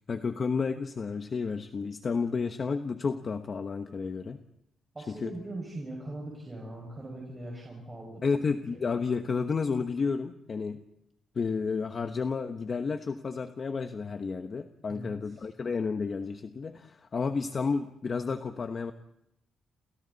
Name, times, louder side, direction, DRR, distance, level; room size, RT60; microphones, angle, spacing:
voice 1, 0.1-4.4 5.2-5.3 8.2-10.8 11.3-18.9, left 5 dB, 35° left, 7 dB, 1.1 m, -31 dB
voice 2, 4.9-8.2 14.9-15.5, right 1 dB, 15° right, -2 dB, 5.9 m, -41 dB
30.0 x 29.5 x 4.1 m, 0.80 s
wide cardioid pair, 165°, 0 cm